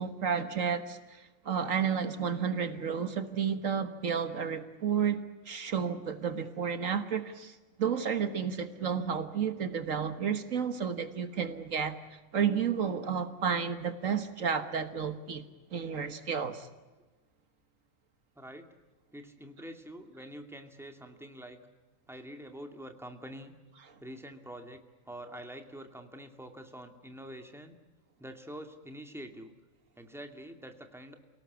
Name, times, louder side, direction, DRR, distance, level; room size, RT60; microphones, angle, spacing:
voice 1, 0.0-5.2 5.5-15.4 15.7-16.7, right 7 dB, 70° right, 9 dB, 1.7 m, -31 dB
voice 2, 18.4-18.7 19.1-21.6 22.1-23.5 24.0-24.8 25.1-27.8 28.2-29.5 30.0-31.1, equal, ahead, 5 dB, 2.3 m, -46 dB
29.5 x 18.0 x 8.2 m, 1.2 s
omnidirectional pair, 1.4 m